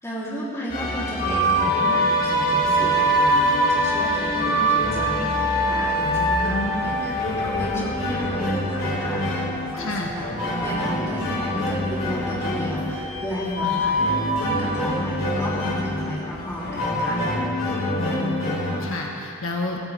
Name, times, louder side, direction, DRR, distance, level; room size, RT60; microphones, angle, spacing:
voice 1, 0.0-10.3 10.6-17.2, equal, 15° left, -7 dB, 3.7 m, -33 dB
sound 1, 0.7-18.8, equal, 45° left, 4.1 m, -24 dB
sound 2, 2.2-17.4, right 1 dB, 50° right, 2.0 m, -41 dB
voice 2, 6.0-7.0 9.8-10.1 13.6-13.9 18.0-19.8, left 2 dB, 75° left, 0 dB, 1.6 m, -31 dB
23.5 x 14.5 x 3.7 m, 2.5 s
head